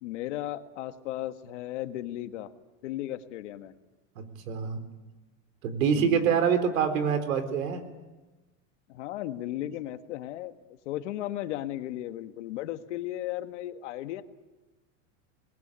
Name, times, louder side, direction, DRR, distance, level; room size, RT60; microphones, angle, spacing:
voice 1, 0.0-2.5 2.8-3.7 5.9-6.5 8.9-10.6 10.8-14.2, left 14 dB, 60° left, 9 dB, 1.6 m, -35 dB
voice 2, 4.2-4.8 5.6-7.9, right 7 dB, 90° right, 9 dB, 4.0 m, -26 dB
27.0 x 20.5 x 8.8 m, 1.2 s
supercardioid pair, 170°, 39 cm